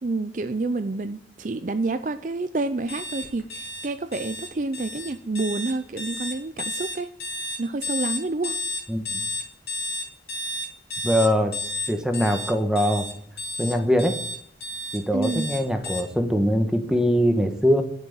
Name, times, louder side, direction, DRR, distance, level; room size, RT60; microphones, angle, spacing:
voice 1, 0.0-7.1 7.6-8.6 15.1-15.5, right 3 dB, 45° right, 11 dB, 0.5 m, -28 dB
sound 1, 2.9-16.0, left 2 dB, 65° left, 2.5 m, -32 dB
voice 2, 11.0-11.5 11.9-13.1 13.6-14.2 14.9-17.8, equal, 5° right, 6 dB, 1.3 m, -22 dB
11.5 x 6.2 x 8.6 m, 0.63 s
head